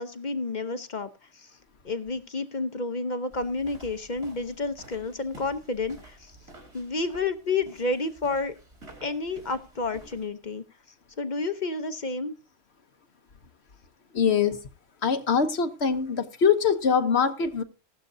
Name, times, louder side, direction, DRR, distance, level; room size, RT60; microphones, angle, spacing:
voice 1, 0.0-1.5 1.8-6.4 6.7-8.5 9.0-10.6 11.2-12.3, left 3 dB, 45° left, 0.9 m, -30 dB
sound 1, 3.3-10.3, right 1 dB, 60° right, 4.0 m, -50 dB
voice 2, 14.1-14.6 15.0-17.6, left 6 dB, 65° left, 1.2 m, -23 dB
16.0 x 12.0 x 2.6 m
omnidirectional pair, 1.2 m